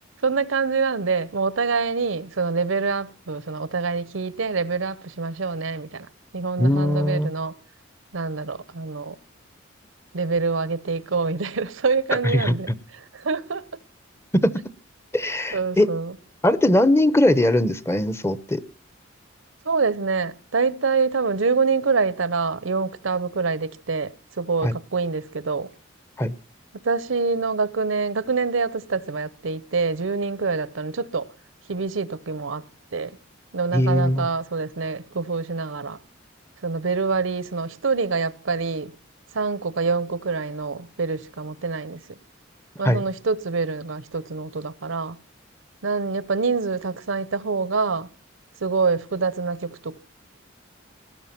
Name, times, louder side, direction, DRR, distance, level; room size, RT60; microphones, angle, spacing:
voice 1, 0.2-6.1 6.3-7.5 8.1-9.2 10.1-13.6 15.5-16.2 19.6-25.7 26.8-31.3 31.7-32.7 32.9-33.1 33.5-36.0 36.6-38.9 39.3-42.0 42.8-45.2 45.8-48.1 48.6-50.0, right 4 dB, 80° right, 0.8 m, -26 dB
voice 2, 6.6-7.3 12.3-12.5 15.1-15.9 16.4-18.6 24.6-24.7 26.2-26.3 33.7-34.3 42.8-43.0, left 1 dB, 15° left, 0.7 m, -20 dB
18.5 x 11.0 x 5.8 m
head